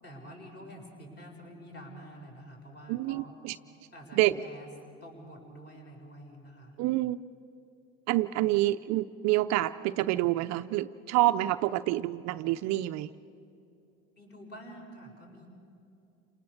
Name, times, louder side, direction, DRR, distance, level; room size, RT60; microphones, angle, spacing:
voice 1, 0.0-3.3 3.9-4.7 5.0-6.8 14.2-15.5, equal, 30° left, 0 dB, 6.9 m, -48 dB
voice 2, 2.9-3.5 4.2-4.3 6.8-7.2 8.1-13.1, right 16 dB, 50° right, 10 dB, 0.6 m, -27 dB
29.5 x 19.0 x 7.1 m, 2.7 s
supercardioid pair, 115°, 36 cm